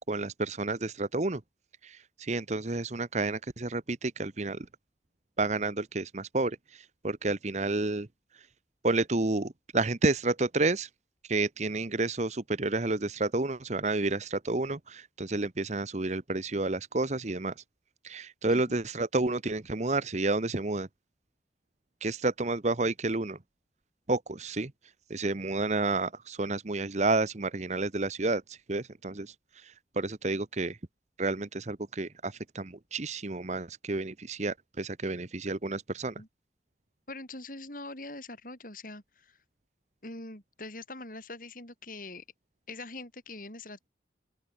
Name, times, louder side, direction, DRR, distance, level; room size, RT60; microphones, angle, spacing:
voice 1, 0.1-1.4 1.8-4.7 5.4-8.1 8.3-8.5 8.8-10.9 11.2-17.5 18.0-20.9 22.0-23.4 24.1-24.7 25.1-30.8 31.2-36.2, right 2 dB, 40° right, 1.0 m, -30 dB
voice 2, 18.5-18.8 36.2-36.3 37.1-39.4 40.0-42.2 42.7-43.9, left 2 dB, 50° left, 7.6 m, -43 dB
open air
head